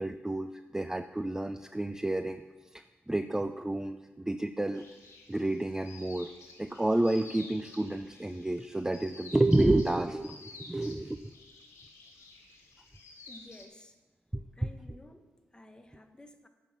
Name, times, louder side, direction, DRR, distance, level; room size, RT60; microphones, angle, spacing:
voice 1, 0.0-2.4 2.7-4.8 5.3-6.3 6.6-11.2 14.3-14.7, right 1 dB, 10° right, 9 dB, 0.4 m, -30 dB
sound 1, 4.7-13.7, left 3 dB, 75° left, 1.9 m, -52 dB
voice 2, 13.3-14.0 14.5-16.5, left 1 dB, 15° left, 7 dB, 1.1 m, -53 dB
8.9 x 5.7 x 7.1 m, 1.2 s
cardioid pair, 55°, 5 cm